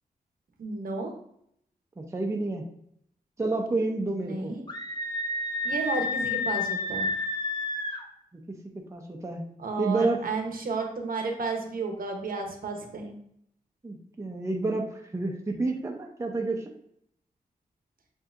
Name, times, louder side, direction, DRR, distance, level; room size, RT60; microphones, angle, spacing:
voice 1, 0.6-1.1 4.2-4.6 5.6-7.1 9.6-13.2, right 3 dB, 70° right, 3 dB, 0.9 m, -32 dB
voice 2, 2.0-2.7 3.4-4.5 8.3-8.6 8.9-9.5 9.8-10.2 13.8-16.7, right 2 dB, 20° right, 1 dB, 0.6 m, -29 dB
Screaming, 4.7-8.0, left 2 dB, 30° left, 0.6 m, -30 dB
7.5 x 2.7 x 2.5 m, 0.72 s
wide cardioid pair, 120°, 15 cm